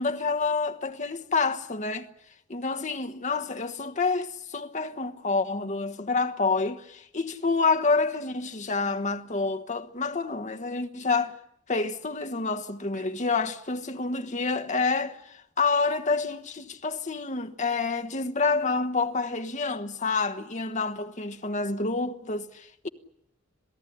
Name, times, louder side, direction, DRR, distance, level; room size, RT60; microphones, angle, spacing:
voice 1, 0.0-2.1 2.5-11.3 11.7-22.9, left 4 dB, 35° left, 1.3 m, -28 dB
27.0 x 17.5 x 10.0 m
head